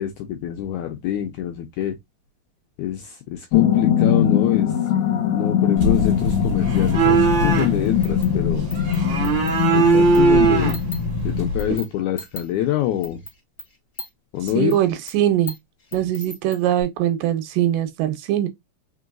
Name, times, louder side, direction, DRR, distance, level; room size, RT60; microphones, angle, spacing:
voice 1, 0.0-2.0 2.8-4.8 5.3-8.7 9.7-10.8 11.2-13.2 14.3-14.8, left 11 dB, 85° left, 1.8 m, -25 dB
sound 1, 3.5-11.5, left 9 dB, 70° left, 1.9 m, -22 dB
sound 2, 5.8-11.8, right 4 dB, 55° right, 1.3 m, -20 dB
sound 3, 7.8-11.0 11.5-14.1 14.4-16.8, left 2 dB, 30° left, 1.5 m, -38 dB
voice 2, 14.6-15.5 15.9-18.5, right 12 dB, 80° right, 2.3 m, -21 dB
4.5 x 3.9 x 2.3 m
omnidirectional pair, 4.1 m